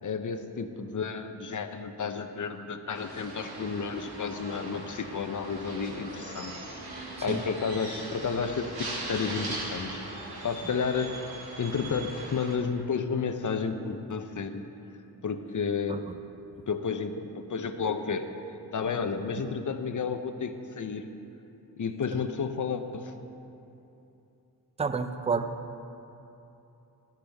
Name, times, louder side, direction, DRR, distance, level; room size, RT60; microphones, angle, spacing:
voice 1, 0.0-6.5 7.2-10.0 10.4-11.2 11.6-14.6 15.2-16.0 16.7-18.3 18.7-21.1 21.8-23.1, left 5 dB, 50° left, 8 dB, 0.8 m, -31 dB
sound 1, 2.9-12.6, right 2 dB, 70° right, 1.9 m, -40 dB
voice 2, 24.8-25.5, right 4 dB, 15° right, 9 dB, 0.5 m, -30 dB
11.5 x 10.5 x 3.5 m, 2.9 s
cardioid pair, 50°, 39 cm